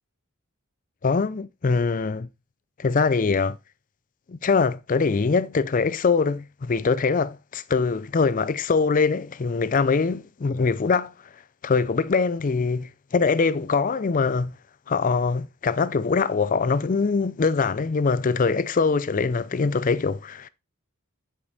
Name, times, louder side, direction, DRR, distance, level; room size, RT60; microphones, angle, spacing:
voice 1, 1.0-2.3 2.8-3.6 4.3-11.1 11.6-14.5 14.9-20.5, left 4 dB, 35° left, 0.4 m, -23 dB
10.0 x 5.0 x 4.1 m
head